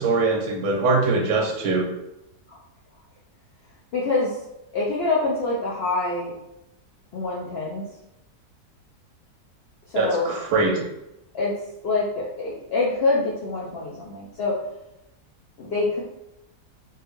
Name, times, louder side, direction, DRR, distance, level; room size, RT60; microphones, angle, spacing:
voice 1, 0.0-1.9 9.9-10.8, right 3 dB, 75° right, 1 dB, 1.1 m, -22 dB
voice 2, 3.9-4.3 4.7-6.3 7.1-7.8 9.9-10.3 11.3-11.5 11.8-14.5 15.6-16.0, left 3 dB, 85° left, -5 dB, 0.5 m, -25 dB
3.5 x 2.1 x 2.9 m, 0.89 s
omnidirectional pair, 1.7 m